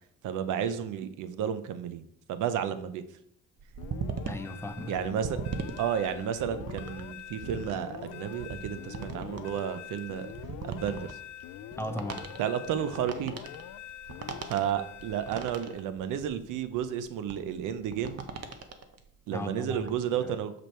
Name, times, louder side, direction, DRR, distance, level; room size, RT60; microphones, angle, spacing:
voice 1, 0.2-2.0 2.3-3.0 4.9-5.4 5.8-10.3 10.6-11.2 12.4-13.4 14.5-18.2 19.3-20.5, right 9 dB, 85° right, 11 dB, 0.7 m, -32 dB
sound 1, 3.6-19.0 19.4-19.9, right 6 dB, 55° right, 0.9 m, -39 dB
sound 2, 3.8-15.9, left 11 dB, 65° left, 0.4 m, -44 dB
voice 2, 4.2-4.9 11.8-12.2 19.3-20.3, left 1 dB, 10° left, 8 dB, 0.7 m, -37 dB
6.2 x 5.1 x 4.4 m, 0.71 s
cardioid pair, 90°, 30 cm